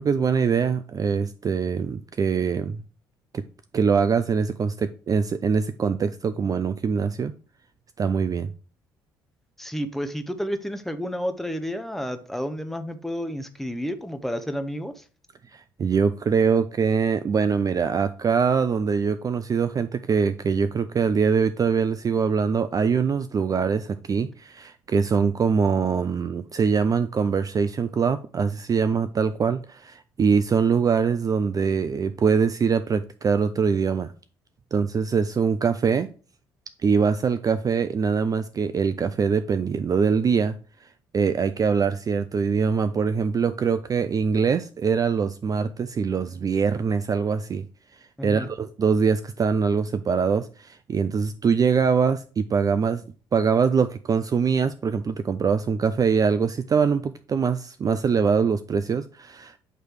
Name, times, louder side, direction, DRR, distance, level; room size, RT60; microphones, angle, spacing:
voice 1, 0.0-2.8 3.3-3.4 3.7-7.3 8.0-8.5 15.5-34.1 34.7-36.1 36.8-40.6 40.8-40.9 41.1-47.7 48.2-53.0 53.3-59.6, right 6 dB, 30° right, 12 dB, 0.4 m, -23 dB
voice 2, 9.6-15.0 48.2-48.5, equal, ahead, 8 dB, 0.8 m, -31 dB
8.9 x 3.1 x 4.5 m, 0.37 s
hypercardioid pair, 50°, 12 cm